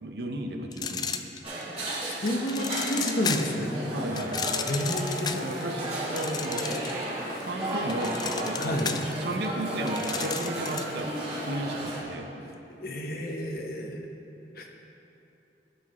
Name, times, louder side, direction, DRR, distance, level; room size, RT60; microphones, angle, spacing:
voice 1, 0.0-1.4 3.9-4.6 5.3-6.7 7.4-11.1 11.4-12.3, right 1 dB, 65° right, 4 dB, 0.8 m, -34 dB
sound 1, 0.7-1.8 2.3-3.6 4.2-7.1 7.4-11.0, left 6 dB, 25° left, 0.3 m, -34 dB
sound 2, 1.4-12.0, right 1 dB, 35° right, 2.1 m, -34 dB
voice 2, 2.1-3.8 4.6-5.5 8.6-8.9 12.8-14.1 14.6-14.7, equal, 55° left, 2 dB, 0.9 m, -30 dB
16.5 x 6.0 x 3.1 m, 2.9 s
head